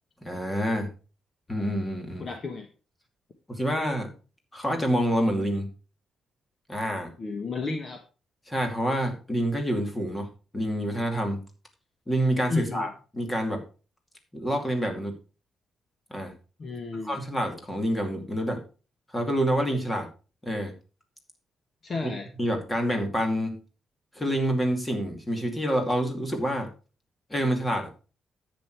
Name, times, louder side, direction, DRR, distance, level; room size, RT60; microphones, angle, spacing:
voice 1, 0.2-0.9 1.5-2.3 3.5-4.1 4.5-5.7 6.7-7.1 8.5-10.3 10.5-11.4 12.1-13.6 14.3-15.2 16.1-16.3 17.0-18.6 19.1-20.1 20.4-20.7 22.0-22.1 22.4-23.6 24.2-26.7 27.3-27.9, equal, 10° left, 4 dB, 2.4 m, -27 dB
voice 2, 2.2-2.7 7.2-8.0 12.5-12.9 16.6-17.2 21.8-22.3, left 3 dB, 35° left, 5 dB, 1.4 m, -32 dB
10.5 x 8.6 x 4.5 m, 0.34 s
cardioid pair, 165°, 0 cm